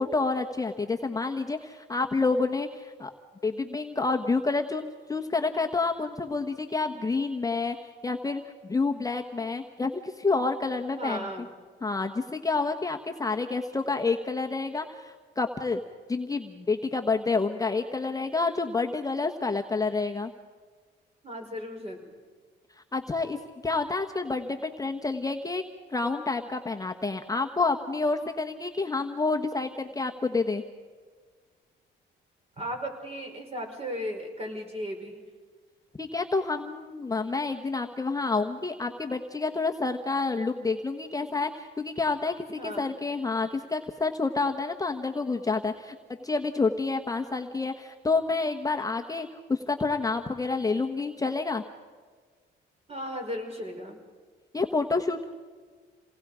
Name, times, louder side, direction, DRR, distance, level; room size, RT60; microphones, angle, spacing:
voice 1, 0.0-3.1 3.4-11.3 11.8-15.8 16.1-20.3 22.9-25.6 25.9-30.6 36.0-45.9 46.2-51.6 54.5-55.3, left 3 dB, 15° left, 3 dB, 1.2 m, -29 dB
voice 2, 11.0-11.5 21.2-22.2 32.6-35.2 42.5-42.9 52.9-54.0, equal, 30° right, 2 dB, 5.4 m, -36 dB
28.0 x 19.0 x 5.0 m, 1.5 s
cardioid pair, 90°, 20 cm